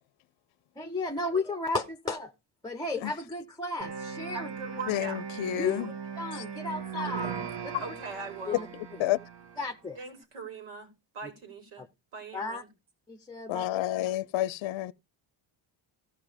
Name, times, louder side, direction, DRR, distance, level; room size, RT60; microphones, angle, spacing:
voice 1, 0.8-2.3 2.6-4.5 5.6-7.4 7.6-7.7 8.5-8.7 9.6-10.0 11.8-11.9 12.3-12.6 13.1-13.6, left 3 dB, 10° left, 0.7 m, -34 dB
sound 1, 3.8-9.7, right 6 dB, 55° right, 1.6 m, -39 dB
voice 2, 4.3-5.2 7.8-8.7 10.0-11.8 12.1-12.7, right 4 dB, 85° right, 4.3 m, -41 dB
voice 3, 4.9-5.9 6.3-6.4 6.9-7.1 7.7-7.8 9.0-9.2 13.5-14.9, left 14 dB, 65° left, 0.6 m, -30 dB
14.5 x 5.4 x 5.0 m
cardioid pair, 130°, 50 cm